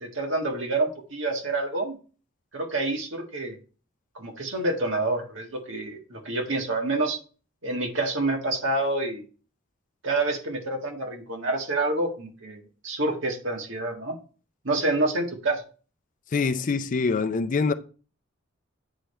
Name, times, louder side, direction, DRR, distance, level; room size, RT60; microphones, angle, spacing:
voice 1, 0.0-2.0 2.5-3.6 4.1-7.2 7.6-9.2 10.0-14.2 14.6-15.6, right 2 dB, 70° right, 1.7 m, -28 dB
voice 2, 16.3-17.7, left 4 dB, 40° left, 0.4 m, -24 dB
8.9 x 3.5 x 4.2 m
head